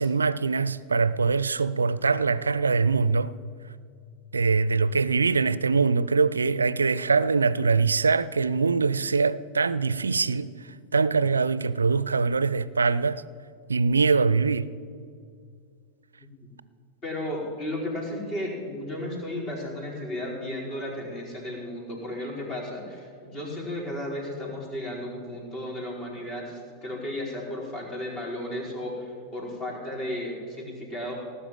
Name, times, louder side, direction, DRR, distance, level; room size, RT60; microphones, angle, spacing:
voice 1, 0.0-3.3 4.3-10.5 10.9-13.2 13.7-14.7, right 4 dB, 75° right, 0.4 m, -23 dB
voice 2, 17.0-31.1, left 1 dB, 35° left, 4.7 m, -34 dB
18.0 x 6.9 x 9.0 m
figure-of-eight pair, 90°, 0 cm